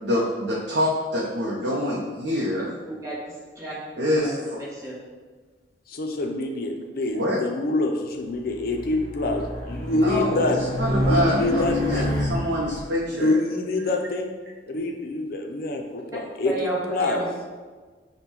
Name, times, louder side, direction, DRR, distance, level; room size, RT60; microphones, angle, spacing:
voice 1, 0.0-2.7 4.0-4.6 7.1-7.4 9.9-13.4, left 1 dB, 75° right, -4 dB, 0.5 m, -26 dB
voice 2, 3.5-5.0 16.4-17.3, right 2 dB, 20° right, -6 dB, 1.0 m, -32 dB
voice 3, 5.9-10.6 11.1-12.2 13.1-14.3 14.7-17.2, left 2 dB, 55° left, 4 dB, 0.4 m, -26 dB
Race car auto racing, 8.5-12.8, left 1 dB, 15° left, 1.3 m, -27 dB
5.3 x 2.1 x 2.9 m, 1.4 s
head